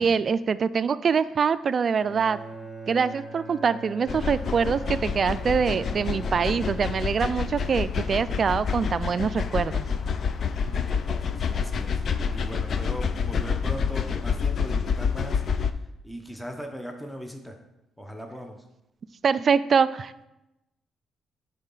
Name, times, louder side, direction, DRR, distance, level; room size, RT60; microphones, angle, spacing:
voice 1, 0.0-2.4 2.9-9.9 19.2-20.3, right 6 dB, 45° right, 15 dB, 0.3 m, -24 dB
Bowed string instrument, 1.9-7.4, right 2 dB, 25° left, 2.3 m, -41 dB
sound 1, 4.1-15.7, left 6 dB, 55° left, 0.4 m, -28 dB
voice 2, 10.6-12.0 12.3-15.4 16.0-17.6 18.0-18.6, equal, 5° left, 4 dB, 0.8 m, -39 dB
9.7 x 4.0 x 3.8 m, 0.91 s
cardioid pair, 90°, 0 cm